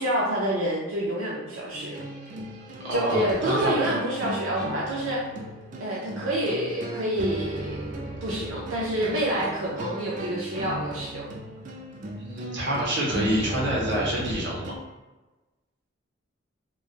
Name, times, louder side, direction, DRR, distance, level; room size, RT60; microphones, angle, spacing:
voice 1, 0.0-2.0 2.9-5.2 5.8-11.3, right 1 dB, 90° right, -4 dB, 0.5 m, -28 dB
sound 1, 1.7-14.8, right 1 dB, 40° right, 0.3 m, -36 dB
voice 2, 2.8-3.7 12.1-14.8, equal, 60° right, -5 dB, 0.9 m, -27 dB
3.1 x 2.2 x 2.4 m, 1.1 s
head